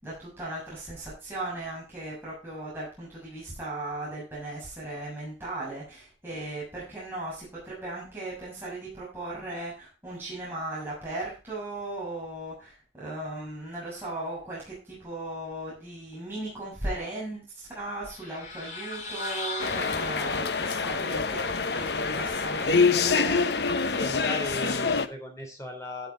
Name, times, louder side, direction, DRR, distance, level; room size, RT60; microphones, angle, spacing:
voice 1, 0.0-23.5, right 2 dB, 15° right, -7 dB, 6.6 m, -37 dB
sound 1, 18.1-20.7, left 3 dB, 40° left, 3.1 m, -37 dB
sound 2, 19.6-25.1, left 4 dB, 65° left, 0.9 m, -26 dB
voice 2, 23.9-26.1, left 1 dB, 15° left, 2 dB, 3.8 m, -37 dB
12.0 x 9.3 x 3.8 m, 0.32 s
head